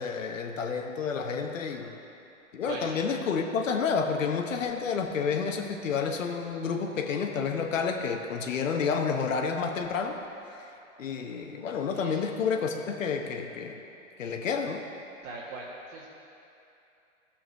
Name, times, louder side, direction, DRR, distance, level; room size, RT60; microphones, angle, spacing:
voice 1, 0.0-2.0 2.5-10.2 10.5-10.7 11.0-13.8 14.2-14.8, left 5 dB, 70° left, 3 dB, 1.0 m, -30 dB
voice 2, 2.6-3.0 11.9-12.2 15.2-16.1, right 3 dB, 55° right, -6 dB, 1.7 m, -41 dB
14.5 x 7.1 x 3.4 m, 2.8 s
hypercardioid pair, 115°, 40 cm